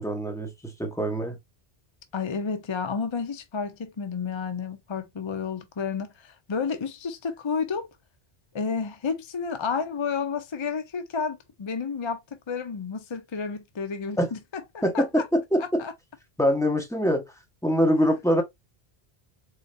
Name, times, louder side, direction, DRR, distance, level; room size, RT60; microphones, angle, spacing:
voice 1, 0.0-1.4 14.2-14.3 14.8-15.8 16.4-17.2 17.6-18.4, equal, 5° left, 0.9 m, -24 dB
voice 2, 2.1-7.9 8.5-15.3 15.6-15.9, left 5 dB, 35° left, 0.5 m, -31 dB
3.8 x 3.3 x 2.6 m
omnidirectional pair, 1.1 m